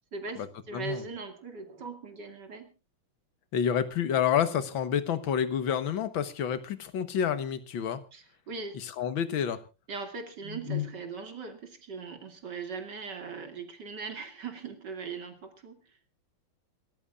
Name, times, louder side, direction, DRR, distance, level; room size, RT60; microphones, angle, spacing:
voice 1, 0.1-2.7 8.1-8.8 9.9-15.8, right 2 dB, 60° right, 6 dB, 3.0 m, -39 dB
voice 2, 0.7-1.0 3.5-8.0 8.7-9.6, left 8 dB, 80° left, 13 dB, 2.0 m, -29 dB
27.0 x 14.0 x 2.4 m, 0.30 s
omnidirectional pair, 2.1 m